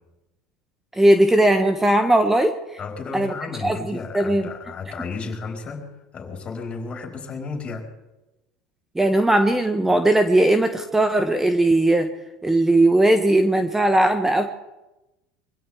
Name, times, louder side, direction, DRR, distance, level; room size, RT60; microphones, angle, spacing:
voice 1, 0.9-2.6 3.1-3.3 3.6-4.4 8.9-12.1 12.4-14.5, right 1 dB, 10° right, 7 dB, 1.3 m, -18 dB
voice 2, 2.8-7.9, left 4 dB, 35° left, 1 dB, 4.5 m, -33 dB
24.5 x 16.0 x 3.6 m, 1.0 s
hypercardioid pair, 85°, 3 cm